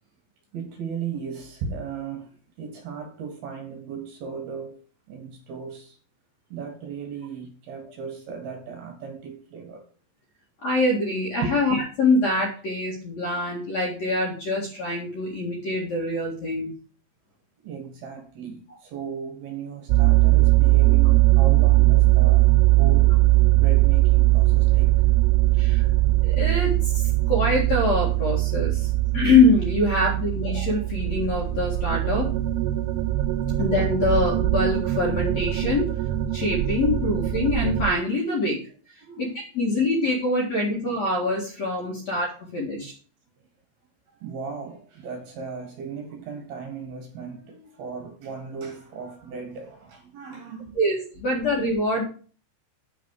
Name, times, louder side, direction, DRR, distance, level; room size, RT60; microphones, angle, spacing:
voice 1, 0.5-2.3 2.6-4.8 5.1-6.0 6.5-9.8 11.1-11.5 17.6-23.2 23.5-25.0 39.0-39.4 41.8-42.0 44.1-50.8 51.3-51.4, right 6 dB, 60° right, 3.2 m, -36 dB
voice 2, 10.6-16.7 25.6-25.8 26.2-32.3 33.6-36.0 36.3-38.6 38.9-42.3 42.5-42.9 50.7-52.0, left 2 dB, 45° left, 2.5 m, -24 dB
sound 1, 19.9-37.9, right 18 dB, 85° right, 2.4 m, -20 dB
9.4 x 7.4 x 4.8 m
omnidirectional pair, 5.4 m